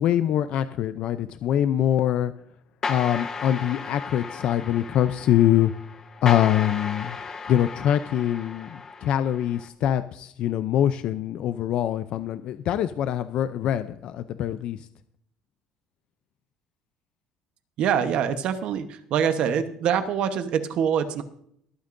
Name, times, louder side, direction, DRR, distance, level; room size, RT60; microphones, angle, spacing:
voice 1, 0.0-2.3 2.9-5.7 6.2-7.2 7.5-14.8, left 11 dB, 50° left, 12 dB, 0.5 m, -24 dB
sound 1, 2.8-9.7, left 4 dB, 25° left, 1.0 m, -35 dB
voice 2, 17.8-21.2, right 8 dB, 55° right, 9 dB, 1.1 m, -24 dB
22.5 x 8.9 x 2.6 m, 0.68 s
cardioid pair, 160°, 2 cm